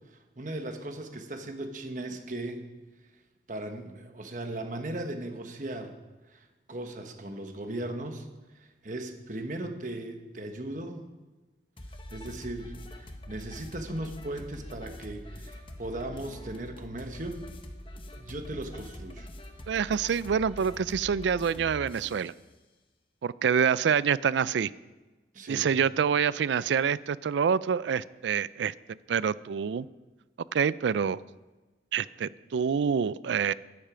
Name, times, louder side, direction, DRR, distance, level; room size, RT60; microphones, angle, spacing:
voice 1, 0.1-2.7 3.5-6.0 6.3-8.3 8.5-11.1 12.1-17.5 18.2-19.3 25.3-25.7, right 1 dB, 45° right, 5 dB, 1.2 m, -38 dB
sound 1, 11.8-22.3, left 1 dB, 30° left, 1.0 m, -44 dB
voice 2, 19.7-22.3 23.2-24.7 25.5-29.9 30.5-31.2 31.9-33.5, right 7 dB, 80° right, 19 dB, 0.4 m, -27 dB
13.0 x 10.0 x 5.0 m, 1.2 s
head